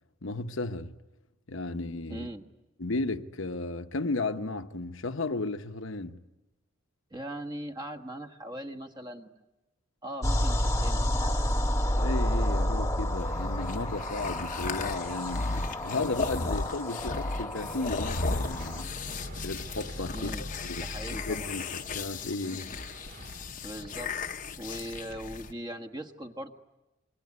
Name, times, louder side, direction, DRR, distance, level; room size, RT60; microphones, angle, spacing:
voice 1, 0.2-0.9 1.5-2.3 2.8-6.2 12.0-15.5 15.8-18.9 19.4-20.3 20.6-20.8 21.3-22.7, left 3 dB, 65° left, 1.0 m, -34 dB
voice 2, 2.1-2.4 7.1-9.3 10.0-11.6 20.1-20.5 20.8-21.5 23.6-24.1 24.6-26.5, right 1 dB, 20° right, 1.4 m, -40 dB
sound 1, 10.2-18.8, left 1 dB, 15° left, 1.4 m, -30 dB
sound 2, 13.1-25.5, left 3 dB, 40° left, 0.9 m, -35 dB
sound 3, 18.3-23.5, right 2 dB, 45° right, 1.9 m, -49 dB
26.5 x 23.5 x 9.7 m
head